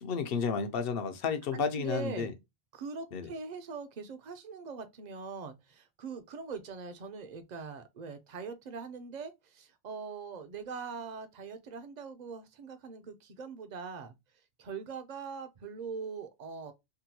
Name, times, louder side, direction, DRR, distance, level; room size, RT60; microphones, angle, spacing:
voice 1, 0.0-2.3 3.1-3.3, left 6 dB, 65° left, 0.8 m, -32 dB
voice 2, 1.5-2.3 2.7-14.2 14.6-16.7, right 5 dB, 50° right, 0.6 m, -42 dB
3.6 x 2.2 x 2.8 m
omnidirectional pair, 1.1 m